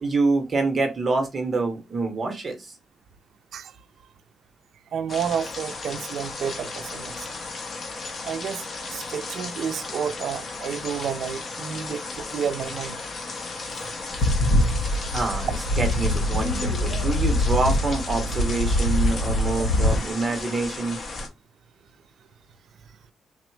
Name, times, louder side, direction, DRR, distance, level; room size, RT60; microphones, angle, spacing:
voice 1, 0.0-2.7 14.8-15.5 15.8-21.0, right 3 dB, 30° right, 0.7 m, -26 dB
voice 2, 4.9-7.2 8.2-13.0, right 7 dB, 60° right, 0.3 m, -30 dB
sound 1, 5.1-21.3, left 3 dB, 35° left, 0.8 m, -34 dB
sound 2, 14.1-20.0, left 1 dB, 85° left, 1.1 m, -23 dB
3.8 x 2.0 x 4.3 m
wide cardioid pair, 165°, 0 cm